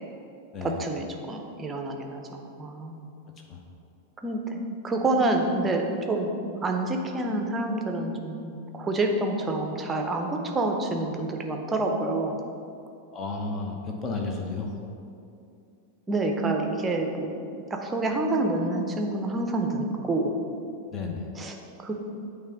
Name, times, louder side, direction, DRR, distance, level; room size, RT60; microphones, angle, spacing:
voice 1, 0.6-3.1 4.2-6.3 6.6-12.4 16.1-17.4 17.7-20.4 21.4-21.9, right 2 dB, 15° right, 3 dB, 0.7 m, -28 dB
voice 2, 13.1-14.7 20.9-21.3, left 3 dB, 30° left, 2 dB, 1.0 m, -32 dB
8.8 x 3.3 x 5.1 m, 2.6 s
figure-of-eight pair, 90°, 0 cm